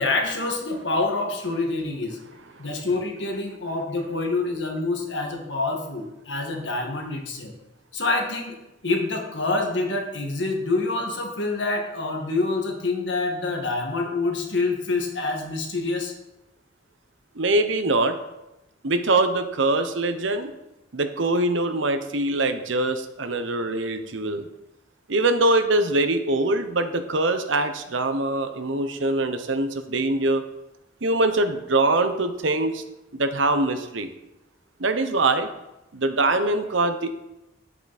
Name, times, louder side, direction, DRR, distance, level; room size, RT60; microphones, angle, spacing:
voice 1, 0.0-2.2 2.6-7.5 7.9-8.6 8.8-16.1, left 3 dB, 70° left, 2 dB, 1.9 m, -26 dB
voice 2, 17.4-18.2 18.8-20.5 20.9-24.5 25.1-30.4 31.0-32.8 33.1-34.1 34.8-35.5 35.9-37.1, right 2 dB, 85° right, 8 dB, 1.0 m, -23 dB
10.0 x 8.3 x 4.3 m, 0.94 s
head